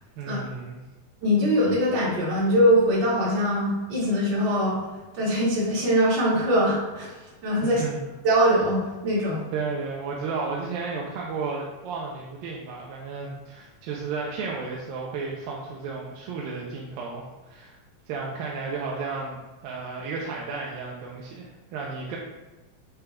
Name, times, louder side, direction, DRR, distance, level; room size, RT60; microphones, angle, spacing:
voice 1, 0.2-0.8 7.6-8.1 9.5-17.8 18.1-22.2, right 4 dB, 80° right, -2 dB, 2.5 m, -33 dB
voice 2, 1.2-4.8 5.1-7.1 7.4-7.8 8.2-9.4, equal, 50° right, -8 dB, 3.4 m, -22 dB
8.3 x 6.6 x 2.4 m, 1.1 s
omnidirectional pair, 4.2 m